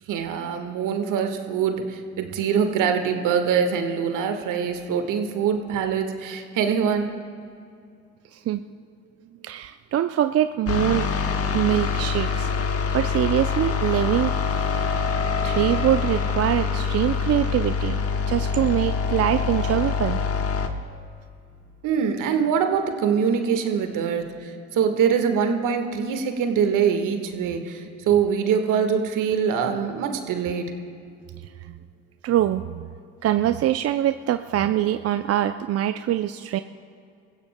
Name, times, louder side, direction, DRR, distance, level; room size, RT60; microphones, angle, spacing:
voice 1, 0.1-7.1 21.8-30.7, right 7 dB, 65° right, 6 dB, 1.5 m, -24 dB
voice 2, 9.4-11.1 11.5-14.3 14.8-15.1 15.4-18.0 18.3-20.2 31.6-31.7 32.2-32.9 33.2-36.6, right 12 dB, 45° right, 10 dB, 0.5 m, -24 dB
sound 1, 10.7-20.7, left 5 dB, 45° left, 1.3 m, -25 dB
27.5 x 15.5 x 2.2 m, 2.4 s
hypercardioid pair, 55°, 33 cm